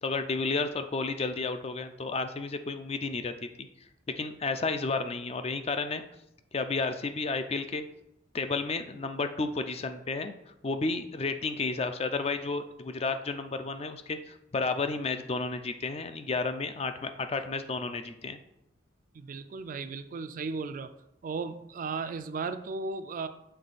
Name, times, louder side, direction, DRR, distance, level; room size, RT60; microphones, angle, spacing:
voice 1, 0.0-3.3 3.6-3.7 4.1-6.0 6.5-7.8 8.3-10.3 10.6-18.4, left 3 dB, 30° left, 8 dB, 0.4 m, -32 dB
voice 2, 19.1-21.0 21.2-23.3, right 4 dB, 45° right, 10 dB, 0.3 m, -35 dB
6.7 x 3.7 x 4.1 m, 0.80 s
head